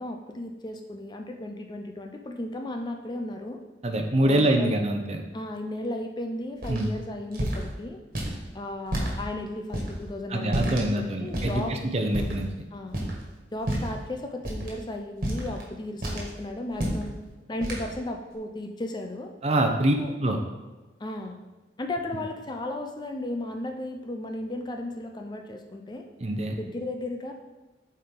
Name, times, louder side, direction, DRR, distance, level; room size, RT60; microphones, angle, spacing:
voice 1, 0.0-3.6 4.2-4.7 5.3-8.0 8.5-11.8 12.7-13.0 13.5-17.1 17.5-19.3 19.9-20.1 21.0-21.4 21.8-26.1 26.5-27.3, left 1 dB, 25° left, 4 dB, 0.5 m, -35 dB
voice 2, 3.8-5.2 6.7-6.9 10.3-12.5 19.4-19.9 20.2-20.4 26.2-26.6, right 1 dB, 35° right, 4 dB, 0.7 m, -25 dB
sound 1, 6.6-6.8 7.3-7.6 8.1-8.4 8.9-9.1 9.7-9.9 10.5-10.9 11.3-11.6 12.1-12.4 12.9-13.2 13.6-14.0 14.4-14.7 15.2-15.6 16.0-16.3 16.7-17.1 17.6-17.9, right 1 dB, 50° right, 1.8 m, -29 dB
8.4 x 4.4 x 3.9 m, 1.2 s
head